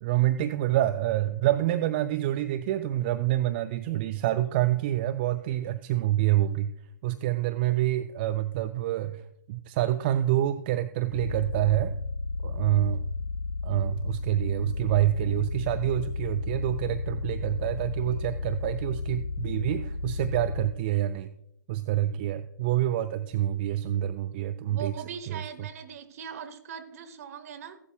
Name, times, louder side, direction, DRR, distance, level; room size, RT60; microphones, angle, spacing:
voice 1, 0.0-6.7 7.0-9.2 9.5-11.9 12.4-13.1 13.6-21.3 21.7-24.9 25.3-25.7, right 13 dB, 30° right, 0.3 m, -27 dB
sound 1, 11.1-20.7, left 3 dB, 80° left, 0.7 m, -33 dB
voice 2, 24.6-27.8, right 7 dB, 45° right, 1.1 m, -40 dB
15.0 x 12.0 x 2.3 m
figure-of-eight pair, 125°, 11 cm